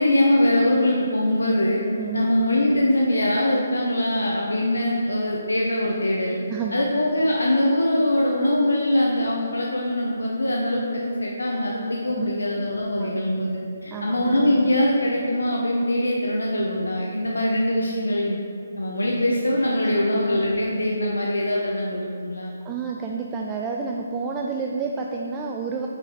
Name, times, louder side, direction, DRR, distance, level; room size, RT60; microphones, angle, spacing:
voice 1, 0.0-1.8 2.1-6.4 6.7-18.4 18.8-22.5, left 1 dB, 75° left, -3 dB, 0.7 m, -22 dB
voice 2, 2.0-2.3 6.5-6.9 12.0-12.4 13.0-13.1 13.9-14.2 22.6-25.9, right 5 dB, 15° right, 1 dB, 0.3 m, -30 dB
4.8 x 4.5 x 4.9 m, 2.5 s
figure-of-eight pair, 140°, 0 cm